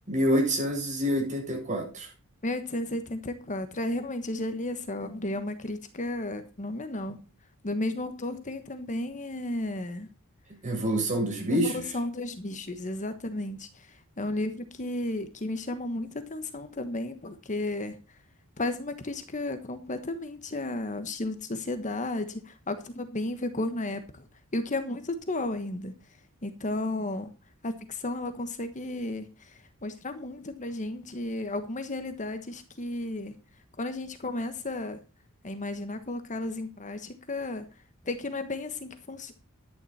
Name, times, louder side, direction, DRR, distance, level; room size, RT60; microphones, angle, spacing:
voice 1, 0.1-2.1 10.6-11.8, equal, 35° right, 7.8 m, -27 dB
voice 2, 2.4-7.2 7.6-10.1 11.5-18.0 18.6-24.2 24.5-25.9 26.4-27.3 27.6-33.3 33.8-35.0 35.4-37.6 38.0-39.3, left 2 dB, 35° left, 1.3 m, -33 dB
11.5 x 10.5 x 4.2 m
head